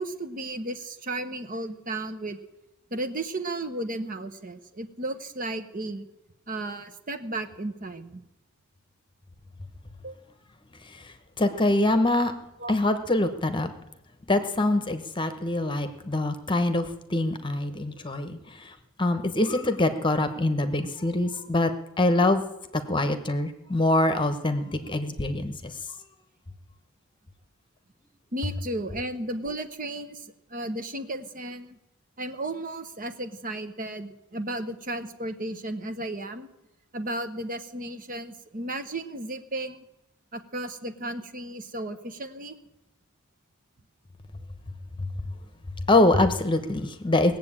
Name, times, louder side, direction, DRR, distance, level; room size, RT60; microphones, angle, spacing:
voice 1, 0.0-2.4 2.9-6.1 6.5-8.2 10.0-10.2 12.6-12.7 28.3-31.8 32.2-36.5 36.9-39.9 40.3-42.6, right 2 dB, 35° right, 9 dB, 1.0 m, -34 dB
voice 2, 10.8-12.3 12.7-13.7 14.3-21.7 22.0-22.4 22.7-25.7 45.0-45.1 45.9-47.4, left 2 dB, 20° left, 9 dB, 1.0 m, -24 dB
19.0 x 7.8 x 8.8 m, 0.93 s
head